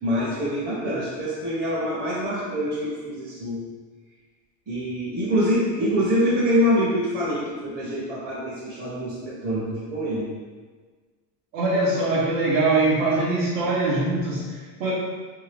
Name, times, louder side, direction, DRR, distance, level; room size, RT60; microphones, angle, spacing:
voice 1, 0.0-3.6 4.7-10.3, equal, 20° right, -9 dB, 0.6 m, -25 dB
voice 2, 11.5-14.9, right 2 dB, 80° right, -5 dB, 0.9 m, -22 dB
2.7 x 2.4 x 3.3 m, 1.5 s
supercardioid pair, 130°, 48 cm